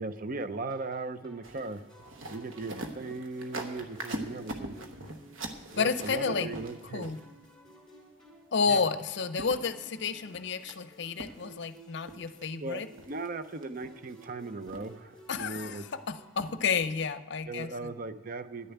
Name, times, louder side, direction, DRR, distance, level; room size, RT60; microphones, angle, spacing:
voice 1, 0.0-1.8 2.3-4.8 5.7-7.1 8.7-8.8 12.6-12.8 13.1-15.8 17.5-18.7, right 3 dB, 45° right, 11 dB, 0.5 m, -38 dB
sound 1, 0.7-16.6, equal, 5° left, 3.3 m, -56 dB
sound 2, 1.4-7.5 9.0-9.1 9.4-10.8 11.2-11.8 12.0-12.5 13.0-13.3 13.6-14.3 14.7-15.2 15.5-16.0 16.4-16.6 16.9-17.0, right 1 dB, 80° right, 1.2 m, -42 dB
voice 2, 5.7-6.5 6.9-7.2 8.5-12.9 15.3-17.9, left 5 dB, 60° left, 13 dB, 0.6 m, -31 dB
10.5 x 6.9 x 9.2 m, 1.3 s
head